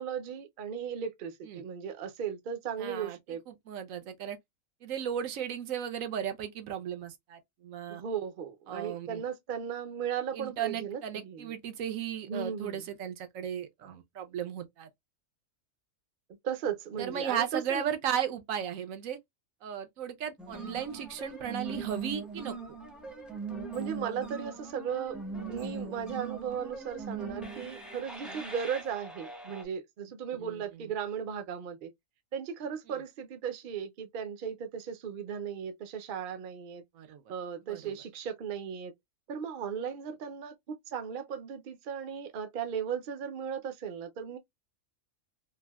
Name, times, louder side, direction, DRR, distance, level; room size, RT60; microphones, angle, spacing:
voice 1, 0.0-3.4 7.9-11.5 12.3-12.9 16.4-17.9 23.7-25.2 25.5-31.9 32.3-36.8 37.3-38.9 39.3-44.4, right 7 dB, 55° right, 0.6 m, -36 dB
voice 2, 2.8-3.2 3.5-4.4 4.8-8.0 8.7-9.2 10.3-14.9 17.0-19.2 19.6-22.5 28.2-28.4 30.4-30.6 36.9-37.2 37.7-37.9, right 9 dB, 80° right, 1.1 m, -35 dB
sound 1, 20.4-29.6, right 4 dB, ahead, 0.5 m, -40 dB
3.3 x 2.5 x 2.2 m
omnidirectional pair, 1.4 m